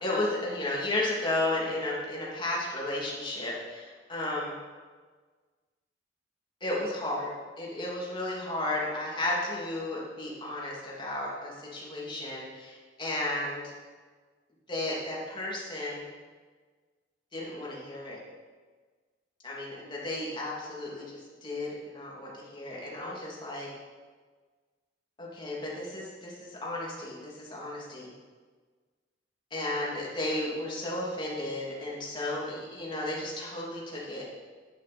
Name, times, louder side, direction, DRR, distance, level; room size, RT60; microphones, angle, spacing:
voice 1, 0.0-4.5 6.6-7.3 7.6-13.7 14.7-16.1 17.3-18.2 19.4-23.7 25.2-28.1 29.5-34.2, left 1 dB, 30° left, -5 dB, 2.9 m, -33 dB
11.5 x 10.5 x 4.4 m, 1.4 s
head